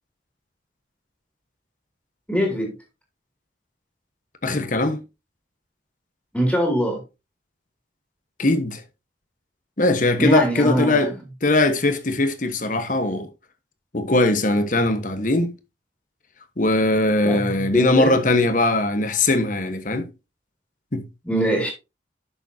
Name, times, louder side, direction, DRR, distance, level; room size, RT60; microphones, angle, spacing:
voice 1, 2.3-2.7 6.3-7.0 10.2-11.1 17.2-18.1 21.2-21.7, right 1 dB, 5° left, 2.7 m, -22 dB
voice 2, 4.4-5.0 8.4-8.8 9.8-11.1 11.4-13.3 13.9-15.6 16.6-20.1 20.9-21.0, left 2 dB, 40° left, 1.2 m, -20 dB
11.0 x 6.8 x 2.8 m
head